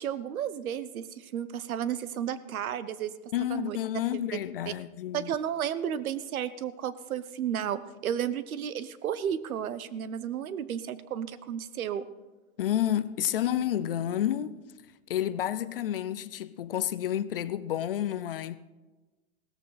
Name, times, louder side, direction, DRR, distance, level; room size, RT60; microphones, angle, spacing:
voice 1, 0.0-3.1 3.5-3.8 4.1-4.2 4.7-4.8 5.1-12.0, right 9 dB, 75° right, 1.0 m, -33 dB
voice 2, 3.3-5.3 12.6-14.6 15.1-18.6, left 11 dB, 45° left, 0.5 m, -30 dB
17.0 x 14.0 x 4.1 m
hypercardioid pair, 160°, 42 cm